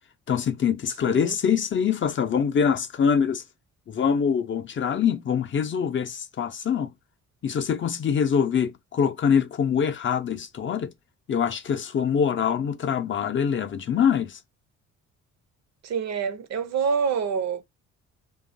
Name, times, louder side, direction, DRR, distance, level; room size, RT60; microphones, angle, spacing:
voice 1, 0.3-3.4 3.9-6.9 7.4-10.9 11.3-14.4, left 7 dB, 40° left, 0.5 m, -24 dB
voice 2, 15.8-17.6, right 6 dB, 60° right, 0.7 m, -26 dB
2.9 x 2.3 x 2.5 m
cardioid pair, 90°, 30 cm